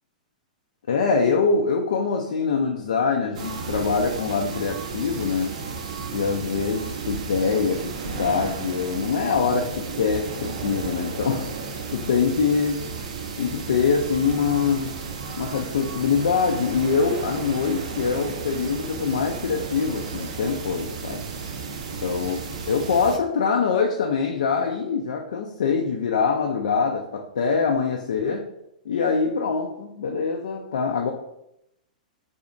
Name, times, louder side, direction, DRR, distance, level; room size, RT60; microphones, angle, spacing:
voice 1, 0.9-5.5 6.1-11.6 11.9-12.8 13.4-15.0 15.3-21.2 22.0-22.4 22.7-28.4 28.9-31.1, left 5 dB, 60° left, 2 dB, 0.3 m, -24 dB
sound 1, 3.3-23.2, right 5 dB, 50° right, 0.4 m, -33 dB
3.9 x 2.7 x 2.4 m, 0.81 s
figure-of-eight pair, 105°, 4 cm